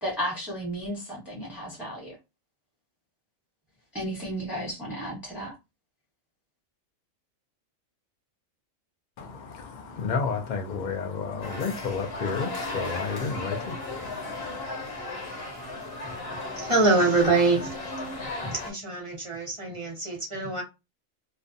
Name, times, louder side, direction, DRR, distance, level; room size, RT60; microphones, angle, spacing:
voice 1, 0.0-2.2 3.9-5.5, equal, ahead, 1.0 m, -33 dB
voice 2, 9.2-14.6, left 5 dB, 75° left, 0.4 m, -32 dB
sound 1, 11.4-18.7, left 2 dB, 55° left, 1.0 m, -35 dB
voice 3, 16.6-17.7 18.4-20.6, right 3 dB, 30° right, 0.7 m, -24 dB
2.4 x 2.3 x 2.5 m
omnidirectional pair, 1.4 m